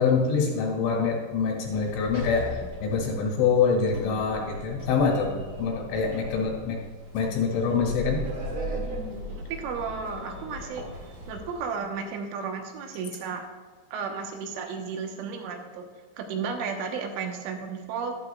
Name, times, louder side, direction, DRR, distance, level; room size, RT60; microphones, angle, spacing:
voice 1, 0.0-6.8 7.1-8.2, left 5 dB, 90° left, -1 dB, 4.5 m, -25 dB
Sliding door, 1.6-11.8, equal, 45° right, 2.2 m, -38 dB
voice 2, 9.1-10.8 11.3-13.4 13.9-15.9 16.2-18.1, right 5 dB, 85° right, 4 dB, 3.5 m, -33 dB
12.5 x 12.0 x 2.3 m, 1.5 s
omnidirectional pair, 5.4 m